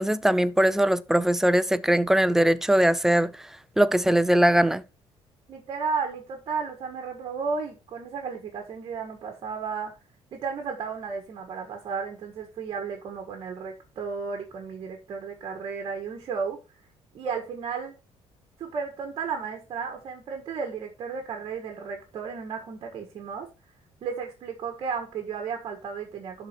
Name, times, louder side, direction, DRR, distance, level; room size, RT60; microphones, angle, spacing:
voice 1, 0.0-3.4 3.8-4.8, right 1 dB, 5° right, 0.3 m, -21 dB
voice 2, 5.5-9.9 10.3-16.6 17.1-17.9 18.6-23.5 24.0-26.5, right 5 dB, 40° right, 1.5 m, -33 dB
12.0 x 3.9 x 4.6 m
cardioid pair, 180°, 11 cm